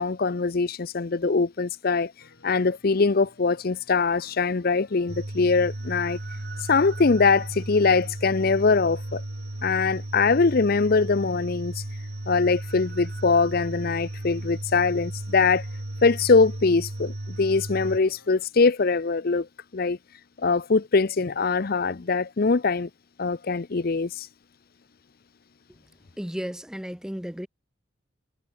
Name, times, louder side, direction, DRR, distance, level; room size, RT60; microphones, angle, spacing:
voice 1, 0.0-2.1 2.4-6.2 6.7-9.2 9.6-11.8 12.3-15.7 16.0-19.5 19.7-20.0 20.4-22.9 23.2-24.3, left 4 dB, 50° left, 0.6 m, -22 dB
sound 1, 2.2-18.5, left 2 dB, 80° left, 5.7 m, -58 dB
sound 2, 5.1-18.0, right 1 dB, 55° right, 1.9 m, -35 dB
voice 2, 26.2-27.5, equal, 5° right, 0.5 m, -33 dB
head